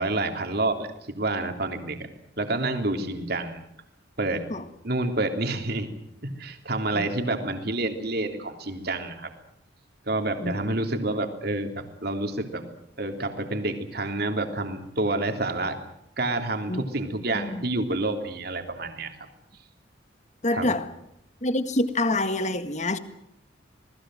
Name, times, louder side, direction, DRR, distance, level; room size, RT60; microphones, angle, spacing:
voice 1, 0.0-2.1 2.4-3.6 4.2-4.5 4.8-5.9 6.2-9.3 10.1-12.7 13.0-15.8 16.2-19.3 20.5-20.7, right 2 dB, 55° right, 3.2 m, -28 dB
voice 2, 20.4-20.9 21.4-23.0, left 2 dB, 40° left, 1.7 m, -26 dB
27.0 x 19.5 x 7.7 m
head